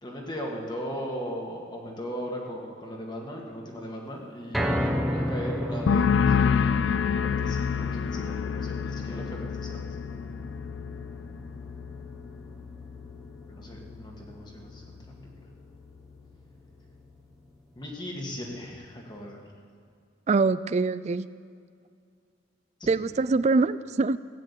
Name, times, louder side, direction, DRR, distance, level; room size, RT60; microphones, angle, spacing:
voice 1, 0.0-9.9 13.5-15.0 15.4-15.5 17.8-19.4 22.8-23.1, equal, 25° left, 0 dB, 1.9 m, -38 dB
sound 1, 4.5-16.8 17.2-17.3 17.7-17.8, equal, ahead, 1.3 m, -35 dB
sound 2, 5.9-13.3 13.6-14.1, left 6 dB, 80° left, 0.4 m, -28 dB
voice 2, 20.3-21.3 22.9-24.2, right 3 dB, 35° right, 16 dB, 0.3 m, -24 dB
15.0 x 9.0 x 8.5 m, 2.2 s
head